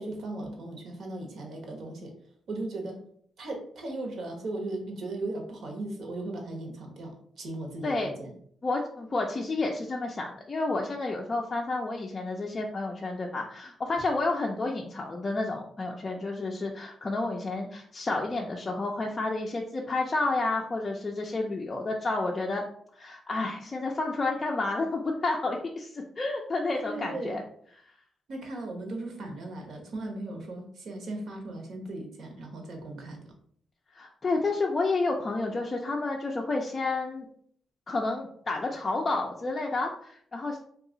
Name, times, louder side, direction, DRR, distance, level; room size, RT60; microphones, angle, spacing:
voice 1, 0.0-2.1 2.5-3.0 3.4-8.4 26.8-27.4 28.3-33.3, right 2 dB, 65° right, 1 dB, 1.0 m, -37 dB
voice 2, 7.8-8.1 8.6-22.6 22.9-27.4 33.9-37.3 37.9-40.6, left 3 dB, 30° left, 0 dB, 0.4 m, -30 dB
2.8 x 2.3 x 3.8 m, 0.63 s
cardioid pair, 125°, 0 cm